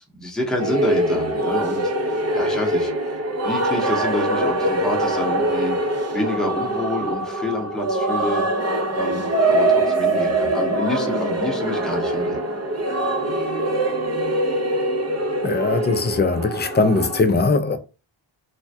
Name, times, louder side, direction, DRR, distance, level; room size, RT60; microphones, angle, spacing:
voice 1, 0.1-3.2 3.4-5.8 6.1-8.4 8.9-12.4, left 1 dB, ahead, 0.8 m, -28 dB
sound 1, 0.6-17.2, right 1 dB, 35° right, 0.6 m, -23 dB
voice 2, 15.4-17.8, left 3 dB, 25° left, 0.4 m, -20 dB
3.2 x 2.2 x 2.7 m
wide cardioid pair, 70°, 48 cm